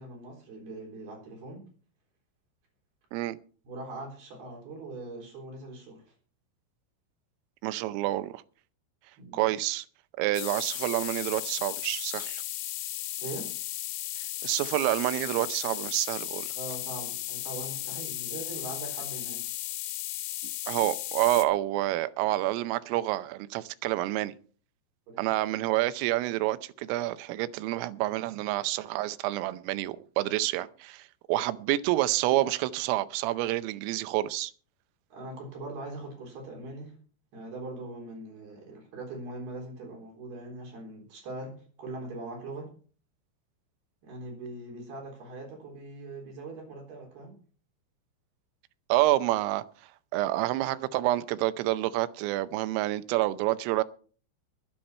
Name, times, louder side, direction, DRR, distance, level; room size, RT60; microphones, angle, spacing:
voice 1, 0.0-1.7 3.7-6.1 9.2-9.4 13.2-13.5 16.5-19.5 25.1-25.4 35.1-37.0 37.3-42.7 44.0-47.4, right 2 dB, 55° right, 5.6 m, -41 dB
voice 2, 7.6-8.4 9.3-9.9 10.2-12.4 14.4-16.5 20.7-24.3 25.2-34.5 48.9-49.6 50.1-53.8, right 16 dB, 85° right, 3.3 m, -28 dB
sound 1, 10.4-21.5, left 14 dB, 90° left, 3.8 m, -35 dB
21.0 x 8.8 x 4.3 m
omnidirectional pair, 5.9 m